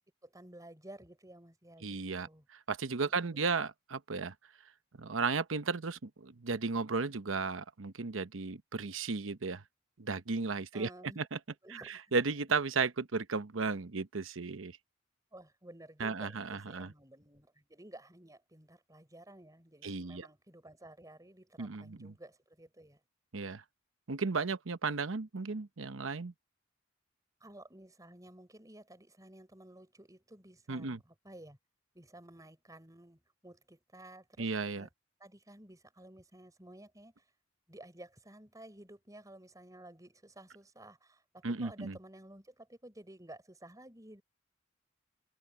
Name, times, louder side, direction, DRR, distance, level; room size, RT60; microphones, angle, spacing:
voice 1, 0.2-2.5 3.0-3.6 10.7-11.3 11.6-12.1 15.3-23.0 27.4-31.6 31.9-34.5 34.7-34.9 35.2-37.2 37.7-44.2, right 1 dB, 20° right, 5.7 m, -53 dB
voice 2, 1.8-4.3 5.0-9.6 10.0-10.9 11.2-11.4 11.7-14.8 16.0-16.9 19.8-20.2 21.6-22.1 23.3-23.6 24.1-26.3 30.7-31.0 34.4-34.9 41.4-42.0, right 4 dB, 90° right, 0.9 m, -35 dB
head